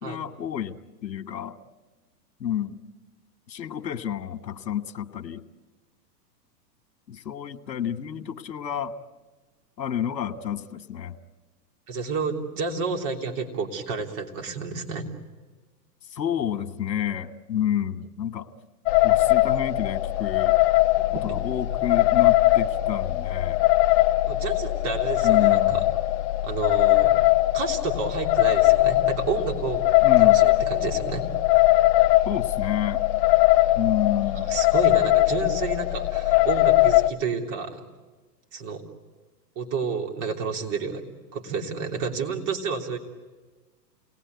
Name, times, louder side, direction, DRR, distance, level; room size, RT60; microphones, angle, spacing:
voice 1, 0.0-1.6 2.4-2.8 3.5-5.4 7.1-8.9 9.8-11.2 16.1-18.5 19.0-20.6 21.2-23.6 25.2-25.9 30.0-30.5 32.2-33.1 33.7-34.5, left 9 dB, 80° left, 9 dB, 1.5 m, -29 dB
voice 2, 11.9-15.1 21.0-21.4 24.2-25.8 26.4-27.1 27.5-29.8 30.2-31.3 34.5-37.8 38.5-38.8 39.5-41.0 41.3-43.0, right 5 dB, 35° right, 2 dB, 3.2 m, -30 dB
sound 1, 18.9-37.1, left 17 dB, 40° left, 0.8 m, -21 dB
28.5 x 19.5 x 9.4 m, 1.3 s
hypercardioid pair, 120°, 50 cm